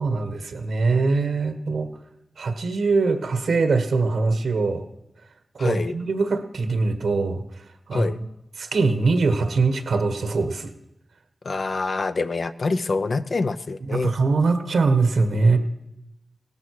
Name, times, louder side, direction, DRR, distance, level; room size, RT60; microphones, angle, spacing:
voice 1, 0.0-1.9 2.4-4.8 5.5-8.3 8.6-10.7 13.8-15.6, right 3 dB, 85° right, 7 dB, 1.5 m, -22 dB
voice 2, 5.6-5.9 7.9-8.2 11.4-14.1, left 3 dB, 60° left, 11 dB, 0.7 m, -25 dB
17.5 x 13.0 x 4.9 m, 0.91 s
cardioid pair, 55°, 0 cm